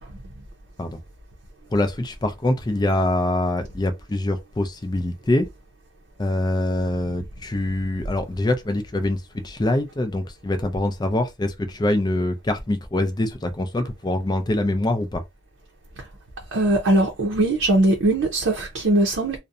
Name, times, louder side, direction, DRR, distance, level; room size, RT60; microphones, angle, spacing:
voice 1, 1.7-5.5 6.2-15.2, left 1 dB, 20° left, 0.4 m, -24 dB
voice 2, 16.5-19.4, right 2 dB, 90° right, 0.6 m, -20 dB
2.6 x 2.0 x 2.4 m
head